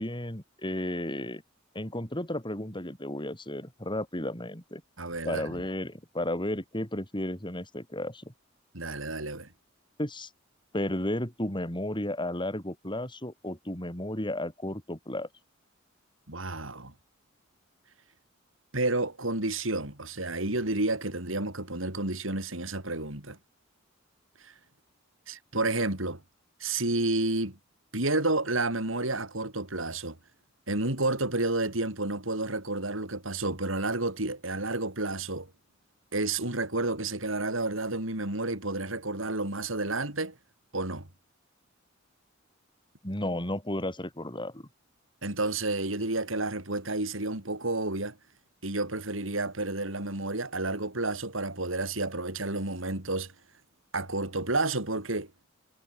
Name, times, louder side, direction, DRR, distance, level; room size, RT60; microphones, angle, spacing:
voice 1, 0.0-1.4 1.7-4.8 5.2-8.3 10.0-10.3 10.7-15.3 43.0-44.7, left 1 dB, 25° left, 7.7 m, -33 dB
voice 2, 5.0-5.6 8.7-9.5 16.3-16.9 18.7-23.4 24.4-24.5 25.3-26.2 26.6-27.6 27.9-30.2 30.7-35.5 36.1-40.4 40.7-41.1 45.2-48.2 48.6-53.3 53.9-55.3, right 2 dB, 75° right, 5.0 m, -30 dB
head